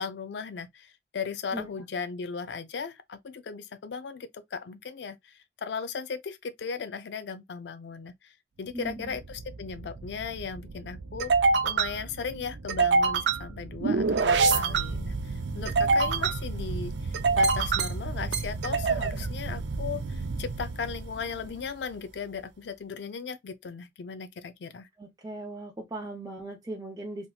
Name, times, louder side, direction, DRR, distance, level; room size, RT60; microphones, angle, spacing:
voice 1, 0.0-11.3 11.6-24.9, left 5 dB, 75° left, 0.4 m, -37 dB
voice 2, 8.7-9.1 25.0-27.3, right 2 dB, 20° right, 0.6 m, -38 dB
sound 1, 8.9-21.6, right 4 dB, 85° right, 0.5 m, -27 dB
3.5 x 2.8 x 2.3 m
head